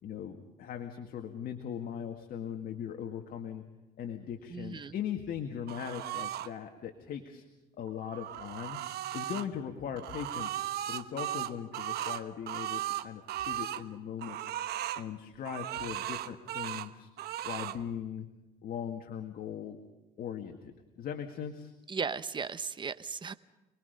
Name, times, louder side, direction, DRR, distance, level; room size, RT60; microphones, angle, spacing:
voice 1, 0.0-3.6 4.0-7.4 7.8-8.8 9.1-14.4 15.0-17.1 17.4-18.3 18.6-19.8 20.2-21.7, left 8 dB, 60° left, 5 dB, 2.1 m, -39 dB
voice 2, 4.5-4.9 21.9-23.3, right 5 dB, 30° right, 14 dB, 1.0 m, -36 dB
sound 1, 5.7-6.5 7.9-9.5 10.0-13.8 14.2-15.0 15.4-16.9 17.2-17.8, right 12 dB, 70° right, 1.1 m, -36 dB
29.0 x 20.5 x 5.3 m, 1.1 s
cardioid pair, 110°, 17 cm